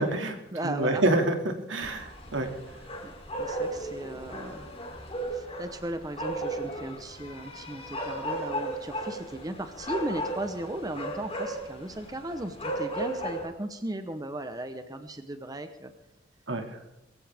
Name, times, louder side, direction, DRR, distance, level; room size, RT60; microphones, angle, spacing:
voice 1, 0.0-0.4 0.6-2.5 16.5-16.6, right 1 dB, 80° right, 4 dB, 2.3 m, -27 dB
voice 2, 0.5-1.0 3.0-3.1 3.4-4.7 5.3-15.9, right 1 dB, 20° right, 8 dB, 0.9 m, -36 dB
sound 1, 1.8-13.5, right 1 dB, 30° left, 3.2 m, -35 dB
22.0 x 15.5 x 3.5 m, 0.87 s
head